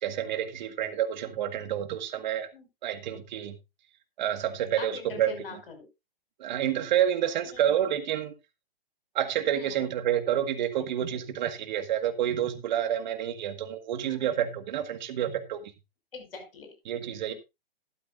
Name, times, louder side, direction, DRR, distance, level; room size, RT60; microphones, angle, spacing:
voice 1, 0.0-2.5 2.8-3.6 4.2-5.3 6.4-8.3 9.1-15.7 16.9-17.3, right 10 dB, 50° right, 9 dB, 1.8 m, -29 dB
voice 2, 4.8-5.9 7.4-7.8 9.5-9.9 14.0-14.4 16.1-16.7 17.3-17.4, left 4 dB, 70° left, 6 dB, 5.8 m, -44 dB
12.5 x 12.0 x 2.6 m, 0.24 s
hypercardioid pair, 135°, 30 cm